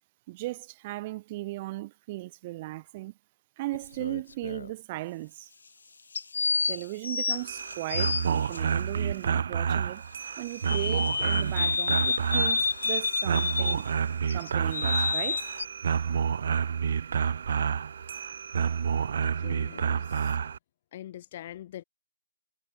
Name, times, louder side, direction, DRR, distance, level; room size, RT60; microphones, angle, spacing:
voice 1, 0.3-3.1 3.6-5.5 6.7-10.0 10.4-13.9 14.2-15.5, right 19 dB, 25° right, 2.3 m, -37 dB
sound 1, 3.7-4.7 6.1-8.6 10.6-13.9 14.3-15.6, left 4 dB, 70° left, 1.6 m, -29 dB
sound 2, 7.3-20.6, right 7 dB, 50° right, 1.2 m, -29 dB
voice 2, 19.2-20.4 20.9-21.8, left 12 dB, 30° left, 2.1 m, -44 dB
hypercardioid pair, 165°, 0 cm